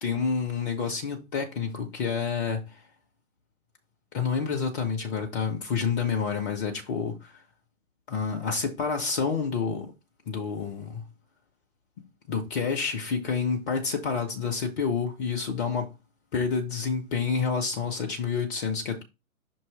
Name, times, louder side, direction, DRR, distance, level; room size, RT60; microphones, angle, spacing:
voice 1, 0.0-2.8 4.1-7.3 8.1-9.9 10.3-11.0 12.3-15.9 16.3-19.0, left 5 dB, ahead, 0.3 m, -28 dB
6.1 x 2.9 x 5.6 m
figure-of-eight pair, 125°, 43 cm